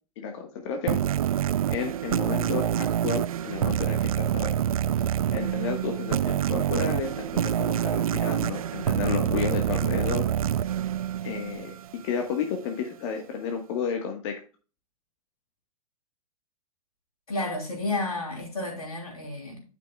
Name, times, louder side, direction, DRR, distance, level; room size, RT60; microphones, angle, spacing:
voice 1, 0.2-1.0 1.7-4.6 5.3-10.3 11.2-14.4, left 6 dB, 55° left, 1.4 m, -32 dB
sound 1, 0.9-12.0, right 10 dB, 75° right, 0.4 m, -26 dB
voice 2, 17.3-19.6, left 2 dB, 90° left, 3.3 m, -31 dB
11.0 x 6.0 x 2.3 m
hypercardioid pair, 105°, 18 cm